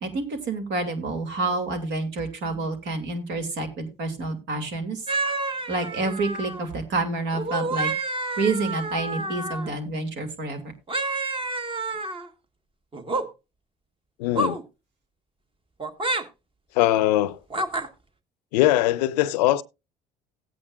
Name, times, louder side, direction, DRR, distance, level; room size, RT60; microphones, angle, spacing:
voice 1, 0.0-5.0 5.7-7.9 8.4-10.7, right 3 dB, 65° right, 2.7 m, -28 dB
sound 1, 5.1-6.7 7.3-9.7 10.9-12.3 12.9-13.3 14.3-14.6 15.8-16.2 17.5-17.9, right 2 dB, 25° right, 1.5 m, -29 dB
voice 2, 14.2-14.6 16.8-17.4 18.5-19.6, left 15 dB, 85° left, 0.5 m, -21 dB
16.5 x 8.7 x 2.4 m
hypercardioid pair, 65°, 21 cm